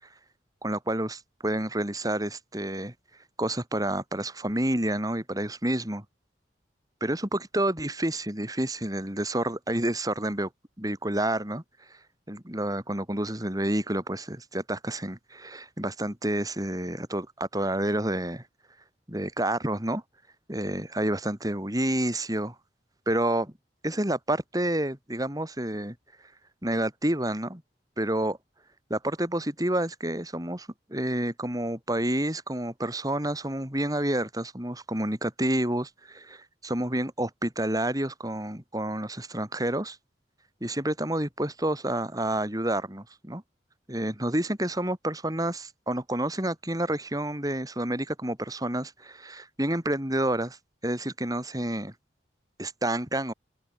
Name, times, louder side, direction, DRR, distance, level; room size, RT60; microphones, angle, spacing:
voice 1, 0.6-2.9 3.4-6.0 7.0-10.5 10.8-11.6 12.3-18.4 19.1-20.0 20.5-22.5 23.1-23.5 23.8-26.0 26.6-27.6 28.0-28.4 28.9-40.0 40.6-43.4 43.9-50.6 50.8-51.9 52.6-53.3, right 1 dB, 20° right, 5.9 m, -29 dB
open air
head